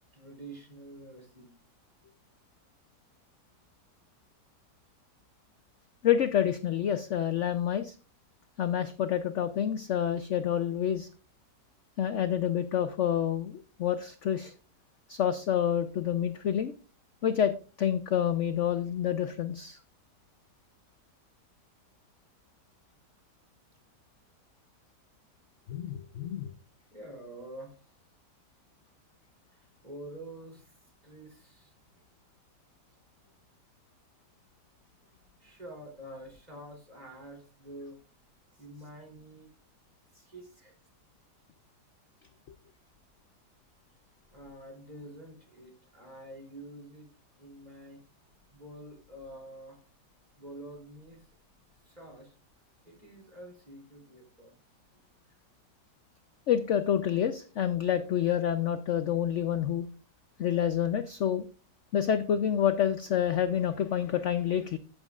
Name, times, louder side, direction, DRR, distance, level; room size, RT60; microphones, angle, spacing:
voice 1, 0.1-1.5 26.9-28.0 29.5-30.8 31.0-31.8 35.4-38.0 38.6-39.5 40.3-40.8 44.2-47.1 47.4-48.0 48.5-49.8 50.4-51.3 51.8-52.3 52.8-54.5 55.3-55.4, right 1 dB, 25° right, -1 dB, 3.4 m, -47 dB
voice 2, 6.0-8.0 8.6-11.1 12.0-14.5 15.1-16.7 17.2-19.8 25.7-26.5 56.5-59.9 60.4-61.4 61.9-64.8, left 9 dB, 65° left, 10 dB, 0.8 m, -28 dB
14.0 x 7.6 x 2.4 m, 0.34 s
omnidirectional pair, 1.8 m